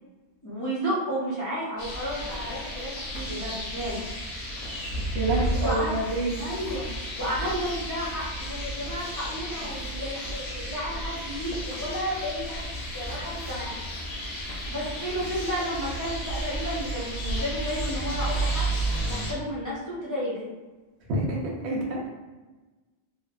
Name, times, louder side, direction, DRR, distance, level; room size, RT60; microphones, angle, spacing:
voice 1, 0.4-4.1 5.3-6.0 6.4-6.9 7.2-13.8 14.7-20.5, equal, 25° left, -9 dB, 0.4 m, -32 dB
sound 1, 1.8-19.3, right 1 dB, 75° left, 1.0 m, -32 dB
voice 2, 5.1-6.5 21.1-21.4 21.6-22.1, right 2 dB, 90° right, -3 dB, 1.0 m, -27 dB
3.0 x 2.1 x 2.4 m, 1.2 s
omnidirectional pair, 1.1 m